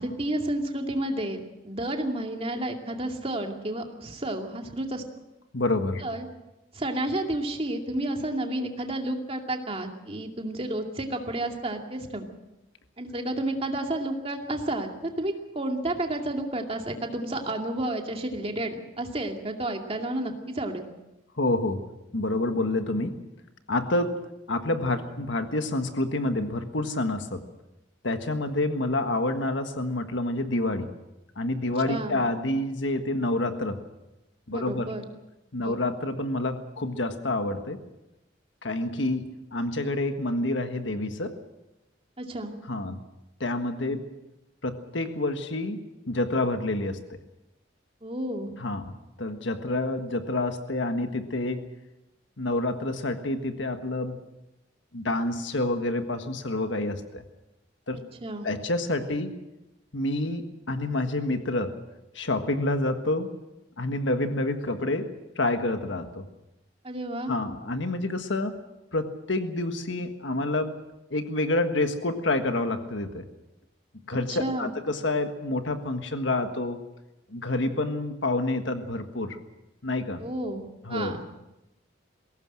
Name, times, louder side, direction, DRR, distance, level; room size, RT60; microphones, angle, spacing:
voice 1, 0.0-5.0 6.0-6.3 6.7-12.3 13.0-20.8 31.9-32.2 34.5-35.0 35.6-35.8 42.2-42.5 48.0-48.5 58.2-58.5 66.8-67.3 74.3-74.7 80.2-81.2, right 1 dB, 30° right, 3 dB, 2.4 m, -31 dB
voice 2, 5.5-6.0 21.4-21.8 22.1-23.2 23.7-27.4 28.0-30.9 31.3-33.8 34.5-34.9 35.5-37.8 38.6-41.4 42.7-43.0 43.4-44.1 44.6-45.8 46.1-47.0 48.6-51.7 52.4-54.2 54.9-57.2 57.9-58.0 58.4-59.4 59.9-61.8 62.1-63.3 63.8-66.3 67.3-68.6 68.9-70.8 71.1-73.2 74.1-76.8 77.3-79.4 79.8-80.2 80.8-81.2, left 2 dB, 70° left, 7 dB, 1.6 m, -28 dB
21.5 x 17.5 x 7.7 m, 0.95 s
head